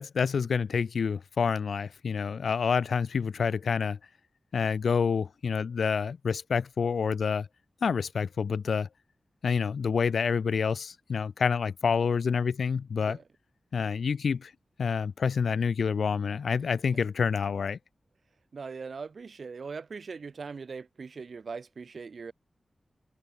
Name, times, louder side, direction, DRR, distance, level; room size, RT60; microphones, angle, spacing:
voice 1, 0.0-4.0 4.5-7.5 7.8-8.9 9.4-13.2 13.7-14.5 14.8-17.8, left 6 dB, 85° left, 0.6 m, -28 dB
voice 2, 18.5-22.3, right 5 dB, 65° right, 1.9 m, -40 dB
wide cardioid pair, 105°, 0 cm